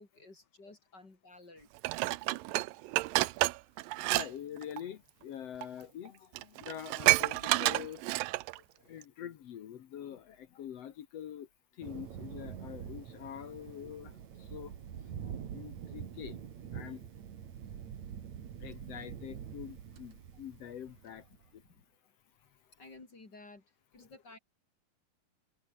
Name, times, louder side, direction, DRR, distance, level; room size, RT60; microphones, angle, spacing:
voice 1, 0.0-1.7 21.7-21.9 22.8-23.6 23.9-24.4, left 2 dB, 25° left, 3.6 m, -54 dB
Dishes pots and pans, 1.8-4.3 4.6-4.8 5.6-5.7 6.1-6.2 6.4-8.6 9.0-9.1, right 19 dB, 80° right, 2.1 m, -29 dB
voice 2, 2.1-2.5 2.9-3.0 3.9-8.2 8.6-14.7 15.0-16.4 16.7-17.1 18.6-21.6 22.4-22.8, left 10 dB, 70° left, 1.5 m, -46 dB
Thunder, 11.8-21.5, right 9 dB, 50° right, 2.9 m, -45 dB
omnidirectional pair, 4.6 m